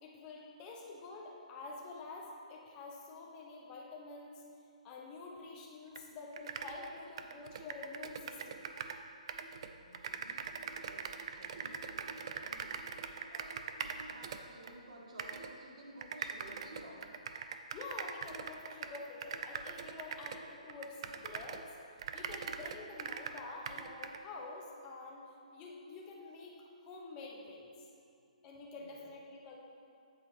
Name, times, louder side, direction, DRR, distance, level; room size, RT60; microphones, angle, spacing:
voice 1, 0.0-4.4 4.8-8.6 17.7-21.7 22.1-27.7 28.4-29.6, left 3 dB, 20° left, -2 dB, 0.9 m, -48 dB
sound 1, 6.0-6.1 6.3-9.0 9.3-14.7 15.2-15.5 16.0-21.7 22.0-24.2, right 6 dB, 45° right, 0.4 m, -42 dB
voice 2, 9.8-12.8 13.2-17.4 28.7-29.0, right 1 dB, 60° right, -3 dB, 1.6 m, -54 dB
7.9 x 4.5 x 4.8 m, 2.4 s
hypercardioid pair, 160°, 4 cm